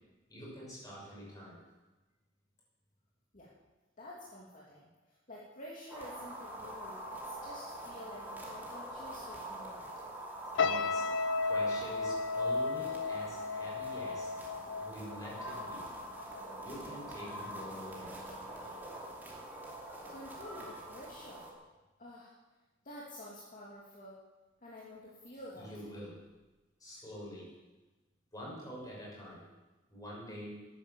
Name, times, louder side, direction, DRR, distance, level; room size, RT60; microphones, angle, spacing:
voice 1, 0.3-1.6 10.5-11.0 11.4-14.3 14.8-15.8 16.6-18.1 25.5-26.2 26.8-27.5 28.3-29.4 29.9-30.6, equal, 20° left, -5 dB, 6.5 m, -46 dB
voice 2, 4.0-9.9 20.1-21.5 22.0-22.3 22.8-24.2 24.6-25.8, left 1 dB, 40° left, -6 dB, 2.7 m, -49 dB
sound 1, 5.9-21.5, right 1 dB, 10° right, 2.7 m, -45 dB
sound 2, 10.6-15.9 16.2-16.5, left 4 dB, 65° left, 0.6 m, -34 dB
13.0 x 10.5 x 7.4 m, 1.2 s
head